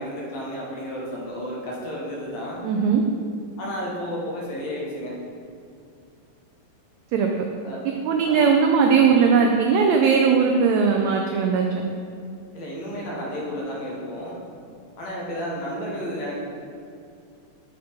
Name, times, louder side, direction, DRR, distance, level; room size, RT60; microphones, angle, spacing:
voice 1, 0.0-2.6 3.6-5.1 7.6-7.8 8.2-8.6 12.5-14.4 15.0-16.4, equal, 65° left, -4 dB, 2.1 m, -32 dB
voice 2, 2.6-3.0 7.1-7.3 8.0-11.8, right 6 dB, 90° right, 2 dB, 1.5 m, -19 dB
6.7 x 5.1 x 4.4 m, 2.4 s
omnidirectional pair, 3.7 m